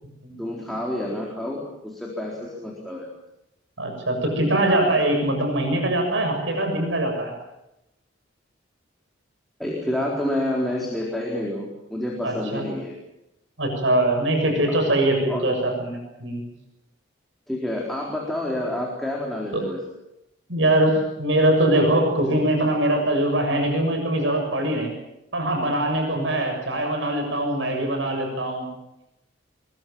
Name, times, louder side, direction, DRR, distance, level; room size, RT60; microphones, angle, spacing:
voice 1, 0.4-3.1 9.6-13.0 14.7-14.8 15.3-15.5 17.5-19.8, left 1 dB, ahead, -3 dB, 4.0 m, -28 dB
voice 2, 3.8-7.3 12.2-12.6 13.6-16.4 19.5-19.6 20.5-24.9 25.3-28.7, right 1 dB, 75° right, 3 dB, 7.1 m, -22 dB
23.0 x 22.5 x 7.7 m, 0.89 s
head